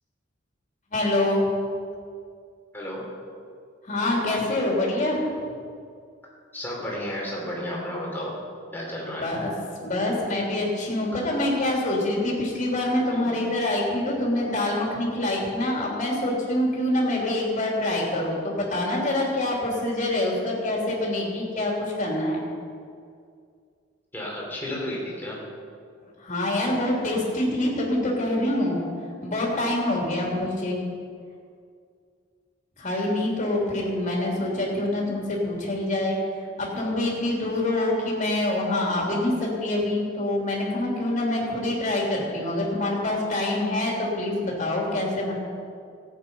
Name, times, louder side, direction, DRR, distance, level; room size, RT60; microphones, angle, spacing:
voice 1, 0.9-1.5 3.8-5.2 9.2-9.5 9.8-22.4 26.2-28.8 29.2-30.8 32.8-36.2 36.6-45.3, left 1 dB, 40° left, -3 dB, 3.2 m, -25 dB
voice 2, 6.5-8.4 8.7-9.3 11.1-11.2 13.1-13.4 24.1-25.4 32.9-33.1, left 1 dB, 10° left, -4 dB, 3.4 m, -33 dB
15.0 x 8.8 x 5.5 m, 2.2 s
head